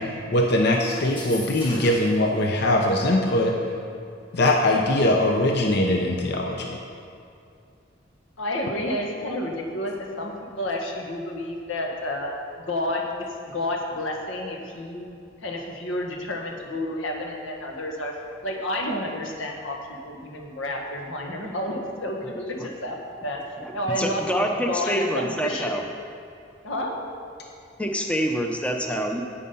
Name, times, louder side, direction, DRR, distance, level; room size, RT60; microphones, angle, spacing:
voice 1, 0.0-3.6 4.3-6.8, left 1 dB, 55° left, 1 dB, 0.8 m, -21 dB
sound 1, 1.0-2.2, left 1 dB, 25° left, 2.1 m, -38 dB
voice 2, 8.4-12.3 12.6-15.1 15.4-18.1 18.4-19.8 20.0-23.4 23.7-25.7 26.6-27.0, left 1 dB, 85° left, 1 dB, 1.5 m, -30 dB
voice 3, 23.6-25.8 27.8-29.2, equal, 5° left, 2 dB, 0.6 m, -26 dB
9.8 x 8.6 x 5.5 m, 2.5 s
head